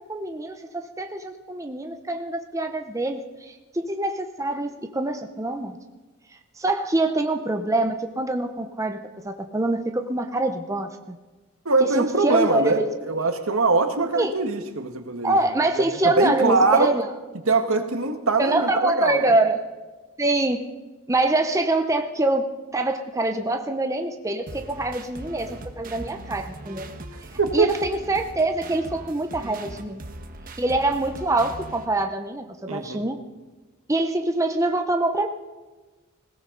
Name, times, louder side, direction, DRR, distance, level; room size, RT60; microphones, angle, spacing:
voice 1, 0.0-5.8 6.6-9.0 9.2-11.2 11.8-12.9 14.1-14.3 15.2-17.1 18.4-19.6 20.2-20.7 21.1-22.5 22.7-26.9 27.5-30.0 30.6-33.2 33.9-35.3, right 2 dB, 15° right, 5 dB, 0.7 m, -25 dB
voice 2, 11.6-15.4 16.0-16.9 17.5-19.3 27.1-27.7 32.7-33.0, right 3 dB, 75° right, 7 dB, 1.5 m, -22 dB
sound 1, 24.5-31.9, right 1 dB, 40° right, 1.3 m, -40 dB
20.0 x 17.0 x 3.9 m, 1.2 s
head